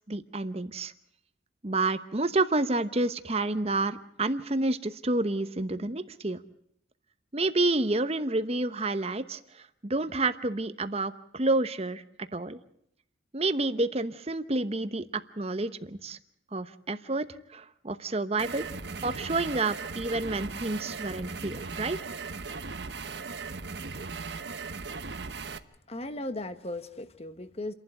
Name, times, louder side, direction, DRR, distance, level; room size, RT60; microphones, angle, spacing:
voice 1, 0.1-0.9 1.6-6.4 7.3-9.4 9.8-12.6 13.3-16.2 16.5-17.2 17.5-18.6 19.0-22.0, right 2 dB, 35° right, 12 dB, 1.0 m, -29 dB
sound 1, 18.4-25.6, right 4 dB, 60° right, 1.0 m, -38 dB
voice 2, 25.9-27.7, left 1 dB, 35° left, 11 dB, 1.2 m, -37 dB
29.5 x 11.5 x 9.1 m, 0.72 s
head